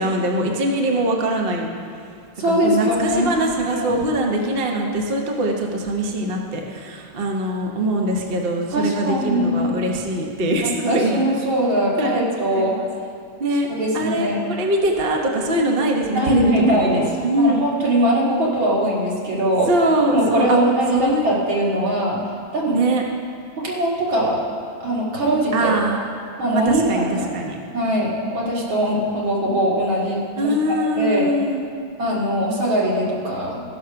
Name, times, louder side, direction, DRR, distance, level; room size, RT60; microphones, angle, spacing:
voice 1, 0.0-1.7 2.4-11.2 12.0-12.9 13.4-13.7 13.9-17.6 19.7-20.6 20.9-21.3 22.7-23.0 25.5-26.0 26.5-27.6 30.4-31.7, right 1 dB, 40° right, 0 dB, 0.9 m, -22 dB
voice 2, 2.4-3.3 3.7-4.0 8.7-9.7 10.9-12.8 13.7-14.4 16.1-17.1 17.4-19.7 20.1-22.2 22.5-22.8 23.6-24.4 24.8-25.7 26.4-27.3 27.7-31.3 32.0-33.6, right 1 dB, 70° right, -5 dB, 2.9 m, -21 dB
14.5 x 6.7 x 5.7 m, 2.3 s
omnidirectional pair, 2.2 m